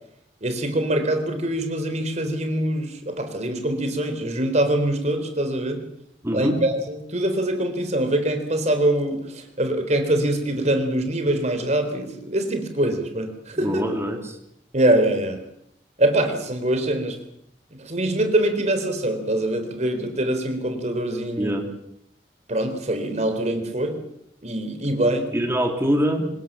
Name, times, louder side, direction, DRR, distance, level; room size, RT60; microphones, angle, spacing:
voice 1, 0.4-5.8 6.3-13.9 14.7-15.4 16.0-17.2 17.9-21.5 22.5-24.0 24.4-25.3, right 1 dB, 40° right, 7 dB, 3.9 m, -24 dB
voice 2, 6.2-6.6 13.6-14.4 21.4-21.7 25.3-26.4, equal, 15° right, 4 dB, 3.2 m, -24 dB
24.0 x 20.0 x 7.5 m, 0.75 s
head